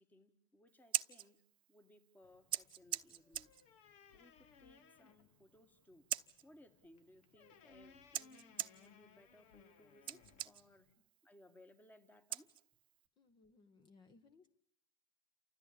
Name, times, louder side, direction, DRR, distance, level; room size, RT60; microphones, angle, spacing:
voice 1, 0.0-1.4 1.7-3.5 4.1-6.1 6.4-10.9 11.2-12.5, left 1 dB, 15° left, 1.8 m, -64 dB
Scissors, 0.7-13.1, right 12 dB, 40° right, 0.9 m, -47 dB
sound 1, 2.2-10.9, left 5 dB, 60° left, 1.5 m, -65 dB
voice 2, 13.2-14.5, left 4 dB, 40° left, 1.5 m, -65 dB
29.0 x 13.5 x 8.6 m
hypercardioid pair, 100°, 13 cm